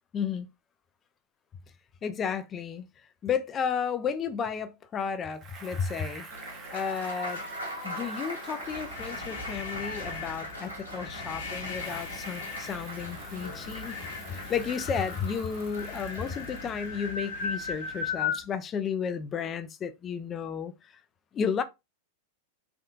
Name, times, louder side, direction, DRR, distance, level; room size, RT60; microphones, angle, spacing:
voice 1, 0.1-0.5 2.0-2.8 3.2-6.3 6.7-7.4 7.8-14.0 14.3-20.7 21.3-21.6, left 7 dB, 25° left, 0.4 m, -32 dB
Bicycle, 5.3-11.2 11.6-16.9, right 4 dB, 30° right, 0.7 m, -48 dB
Applause, 6.3-16.7, equal, 85° right, 1.7 m, -41 dB
sound 1, 8.6-18.4, left 5 dB, 60° left, 0.9 m, -37 dB
3.4 x 2.7 x 2.4 m
figure-of-eight pair, 90°, 0 cm